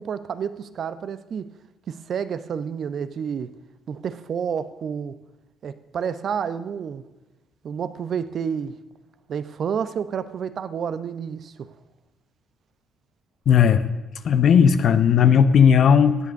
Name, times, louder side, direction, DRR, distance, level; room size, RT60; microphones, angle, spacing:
voice 1, 0.0-1.5 1.9-3.5 3.9-5.1 5.6-7.0 7.6-8.7 9.3-11.7, right 7 dB, 55° right, 0.8 m, -29 dB
voice 2, 13.5-13.8 14.2-16.2, left 7 dB, 55° left, 0.9 m, -16 dB
16.5 x 8.4 x 6.4 m
hypercardioid pair, 50°, 0 cm